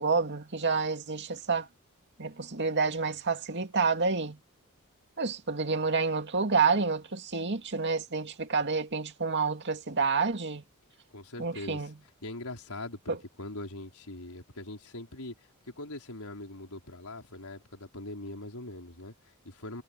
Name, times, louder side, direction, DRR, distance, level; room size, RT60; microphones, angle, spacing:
voice 1, 0.0-1.7 2.2-4.4 5.2-10.6 11.4-11.9 13.1-13.2, right 4 dB, 55° right, 2.3 m, -29 dB
voice 2, 11.1-11.9 12.2-15.3 15.8-19.8, left 2 dB, 80° left, 5.0 m, -42 dB
head